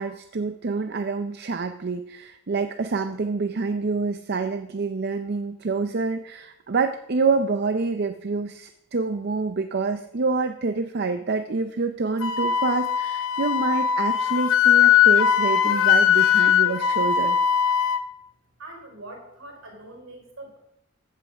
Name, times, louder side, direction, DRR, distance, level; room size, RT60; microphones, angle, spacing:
voice 1, 0.0-17.4, right 4 dB, 50° right, 8 dB, 0.5 m, -27 dB
Wind instrument woodwind instrument, 12.2-18.0, left 9 dB, 70° left, 0.7 m, -20 dB
voice 2, 18.6-20.6, right 2 dB, 70° right, 2 dB, 4.4 m, -43 dB
15.0 x 5.7 x 6.3 m, 0.83 s
head